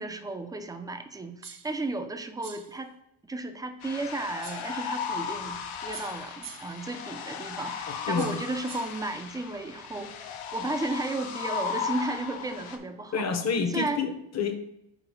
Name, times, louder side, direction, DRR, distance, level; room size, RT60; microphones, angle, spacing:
voice 1, 0.0-2.9 3.3-10.1 10.5-13.3 13.7-14.0, right 2 dB, 10° right, 7 dB, 0.4 m, -34 dB
sound 1, 1.4-1.8 2.4-2.8 4.4-4.8 5.9-6.8 8.2-9.0, right 7 dB, 45° right, 0.7 m, -45 dB
sound 2, 3.8-12.8, left 6 dB, 85° left, 0.9 m, -36 dB
voice 2, 7.9-8.4 13.1-14.6, left 5 dB, 35° left, 7 dB, 0.8 m, -29 dB
4.9 x 3.9 x 5.2 m, 0.83 s
cardioid pair, 125°, 48 cm